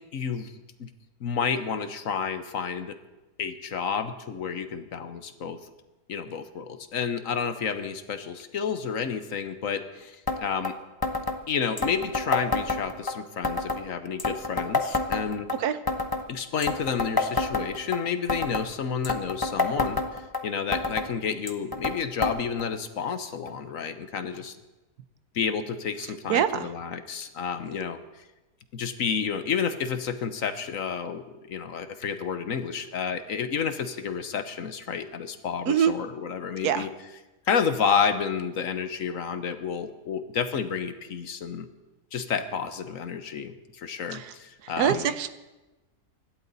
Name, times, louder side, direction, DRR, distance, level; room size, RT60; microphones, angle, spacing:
voice 1, 0.1-0.5 0.8-0.9 1.2-3.0 3.4-5.6 6.1-10.7 11.5-15.5 16.3-24.6 25.3-28.0 28.7-36.9 37.5-41.7 42.1-45.1, left 6 dB, 60° left, 10 dB, 1.2 m, -30 dB
sound 1, 10.3-10.4 10.6-10.7 11.0-11.4 11.8-13.1 13.4-13.8 14.2-15.6 15.9-16.2 16.6-18.0 18.3-18.7 19.0-20.4 20.7-21.1 21.5-22.0 22.2-22.3 22.6-22.7 23.5-23.6 24.3-24.4, left 3 dB, 15° left, 0.8 m, -27 dB
voice 2, 26.3-26.7 35.7-35.9 36.6-36.9 44.1-44.3 44.8-45.3, right 9 dB, 75° right, 12 dB, 1.3 m, -24 dB
25.5 x 12.0 x 4.0 m, 1.1 s
omnidirectional pair, 1.7 m